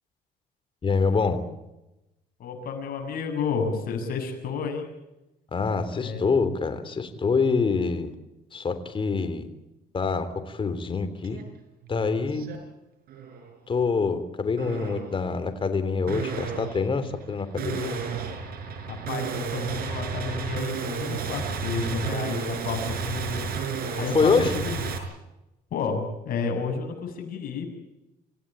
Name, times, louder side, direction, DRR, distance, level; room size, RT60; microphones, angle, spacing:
voice 1, 0.8-1.4 5.5-8.1 8.5-9.4 9.9-11.4 11.9-12.5 13.7-18.0 24.1-24.5, left 4 dB, 30° left, 10 dB, 3.4 m, -25 dB
voice 2, 2.4-4.9 6.0-6.2 19.1-23.5 24.0-24.8 25.7-27.7, left 5 dB, 60° left, 4 dB, 7.4 m, -31 dB
sound 1, 11.2-11.4 11.8-12.6 13.1-13.5 14.6-15.2 16.1-25.0, right 6 dB, 65° right, 5.7 m, -32 dB
28.0 x 16.0 x 9.0 m, 0.95 s
cardioid pair, 110°, 17 cm